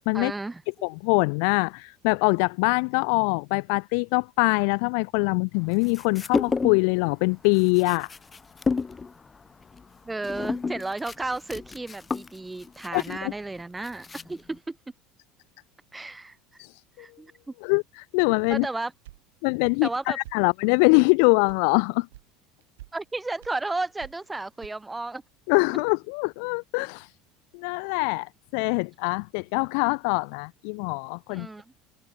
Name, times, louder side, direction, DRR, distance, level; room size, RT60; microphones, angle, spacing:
voice 1, 0.1-0.6 10.0-14.8 15.9-16.4 17.0-17.3 18.5-18.9 19.8-20.2 22.9-25.2 31.3-31.6, right 2 dB, 10° right, 3.6 m, -33 dB
voice 2, 0.8-8.1 12.9-13.3 16.6-17.1 17.6-18.7 19.4-22.1 25.5-27.1 27.5-31.5, left 40 dB or more, 60° left, 4.1 m, -24 dB
sound 1, 5.7-6.9 7.2-14.6, left 4 dB, 20° left, 2.7 m, -32 dB
sound 2, 18.5-18.7 19.0-19.2 19.6-19.8 20.2-20.4 20.8-21.0 21.5-21.6 22.1-22.3 22.6-22.9 23.4-23.6 24.0-24.3 24.6-24.7, right 17 dB, 65° right, 5.7 m, -46 dB
figure-of-eight pair, 70°, 0 cm